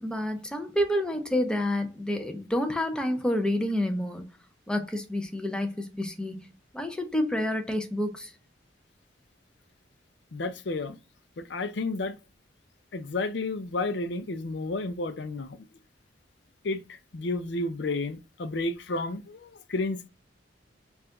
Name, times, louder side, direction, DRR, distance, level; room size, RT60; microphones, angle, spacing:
voice 1, 0.0-4.3 4.7-6.5 6.7-8.3, left 1 dB, 5° left, 0.6 m, -29 dB
voice 2, 10.3-11.0 11.4-12.2 12.9-15.7 16.6-20.1, left 2 dB, 65° left, 0.5 m, -31 dB
4.8 x 2.5 x 3.7 m
head